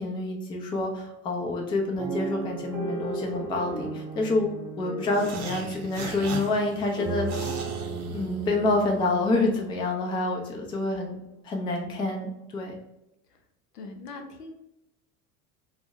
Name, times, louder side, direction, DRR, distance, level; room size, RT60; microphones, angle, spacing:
voice 1, 0.0-4.5 4.8-7.6 8.1-11.2 11.4-12.8, left 2 dB, 10° left, 1 dB, 0.3 m, -27 dB
sound 1, 2.0-10.1 10.7-10.8 11.0-11.3, right 4 dB, 10° right, 0.9 m, -36 dB
sound 2, 5.1-8.8, right 4 dB, 70° right, 0.6 m, -38 dB
voice 2, 13.7-14.5, left 3 dB, 85° left, 5 dB, 0.5 m, -41 dB
2.6 x 2.0 x 3.3 m, 0.87 s
hypercardioid pair, 75°, 46 cm